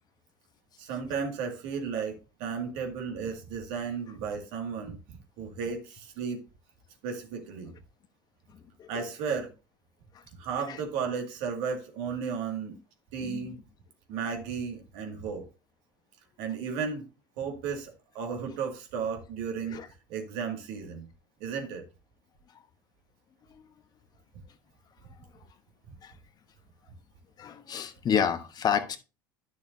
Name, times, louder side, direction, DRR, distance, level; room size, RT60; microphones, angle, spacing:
voice 1, 0.8-5.0 5.4-6.4 7.0-7.8 8.9-9.5 10.4-12.8 13.1-13.6 14.1-15.4 16.4-17.1 17.4-19.8 20.1-21.1 21.4-21.8, right 6 dB, 65° right, 2.2 m, -34 dB
voice 2, 13.2-13.5 19.7-19.9 26.0-26.1 27.4-29.0, left 8 dB, 40° left, 1.1 m, -30 dB
11.0 x 6.4 x 2.7 m
hypercardioid pair, 80°, 11 cm